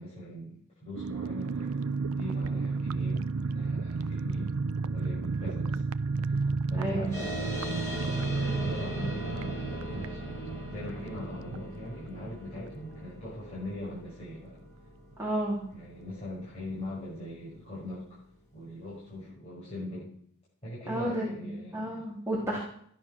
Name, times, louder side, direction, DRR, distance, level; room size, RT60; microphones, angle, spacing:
voice 1, 0.0-4.5 4.8-5.8 6.2-10.4 10.7-14.6 15.7-18.0 18.5-20.1 20.6-22.1 22.5-22.6, left 1 dB, 30° left, -9 dB, 6.3 m, -41 dB
sound 1, 0.9-13.3 13.6-13.7 13.9-14.2, right 4 dB, 85° right, 0.5 m, -32 dB
voice 2, 6.8-7.1 15.2-15.6 20.9-22.6, right 1 dB, 15° right, -5 dB, 3.3 m, -31 dB
sound 2, 7.1-18.0, equal, 15° left, 6.1 m, -41 dB
15.0 x 10.5 x 6.2 m, 0.63 s
head